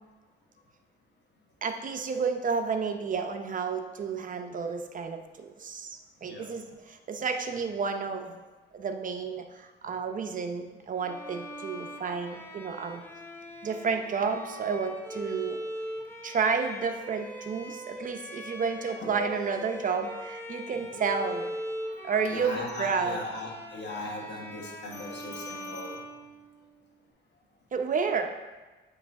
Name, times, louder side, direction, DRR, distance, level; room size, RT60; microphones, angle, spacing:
voice 1, 1.6-8.4 8.7-13.0 13.6-15.6 16.2-21.5 22.0-23.2 27.7-28.3, right 5 dB, 40° right, 6 dB, 0.7 m, -31 dB
voice 2, 6.2-6.8 9.8-9.9 18.9-19.6 20.7-21.0 22.3-26.0, left 2 dB, 65° left, -1 dB, 1.4 m, -39 dB
Bowed string instrument, 11.0-26.9, equal, 10° left, 0.8 m, -41 dB
8.4 x 3.3 x 3.6 m, 1.3 s
cardioid pair, 90°, 20 cm